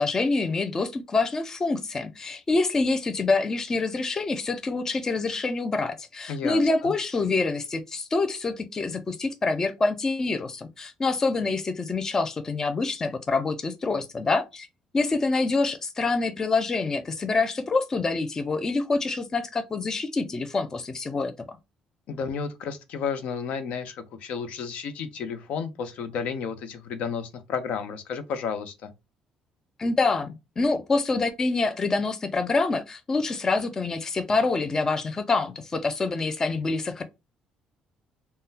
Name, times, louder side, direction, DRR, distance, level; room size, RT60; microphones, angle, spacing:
voice 1, 0.0-14.7 14.9-21.6 29.8-37.0, left 3 dB, 25° left, 0.3 m, -26 dB
voice 2, 6.3-6.9 22.1-28.9, left 6 dB, 75° left, 0.6 m, -32 dB
3.6 x 2.1 x 2.7 m
cardioid pair, 125°, 2 cm